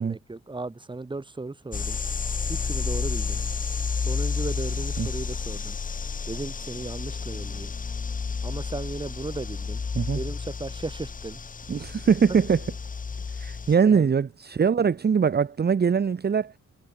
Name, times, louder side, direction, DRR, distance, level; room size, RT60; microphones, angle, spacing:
voice 1, 0.0-2.0 2.5-3.4 4.0-5.8 6.3-7.7 8.4-9.8 10.1-11.4 13.9-14.1, right 3 dB, 15° right, 1.7 m, -36 dB
sound 1, 1.7-13.7, left 5 dB, 25° left, 1.0 m, -31 dB
voice 2, 11.7-12.6 13.3-16.5, right 6 dB, 30° right, 0.9 m, -22 dB
wide cardioid pair, 180°, 31 cm